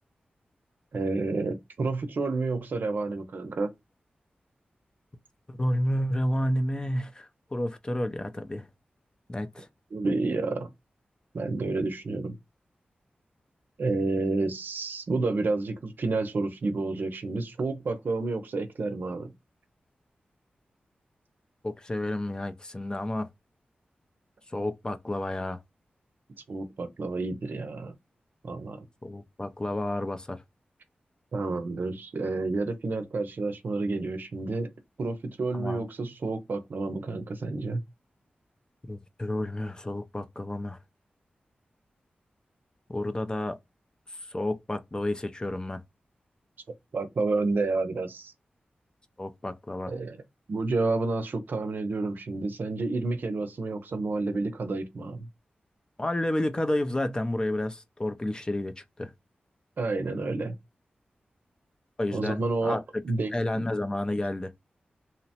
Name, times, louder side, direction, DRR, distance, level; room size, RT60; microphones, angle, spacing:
voice 1, 0.9-3.7 9.9-10.7 11.3-12.4 13.8-19.3 26.5-27.9 28.4-28.8 31.3-34.7 35.0-37.8 46.9-48.3 49.9-50.2 50.5-55.2 59.8-60.6 62.1-62.8 63.0-63.6, right 3 dB, 70° right, 0.5 m, -30 dB
voice 2, 5.5-8.7 9.3-9.7 21.6-23.3 24.5-25.6 29.0-30.4 35.5-35.8 38.9-40.8 42.9-43.6 44.1-45.8 49.2-49.9 56.0-59.1 62.0-63.0 63.3-64.5, left 1 dB, 25° left, 0.4 m, -30 dB
2.8 x 2.0 x 2.7 m
cardioid pair, 65°, 3 cm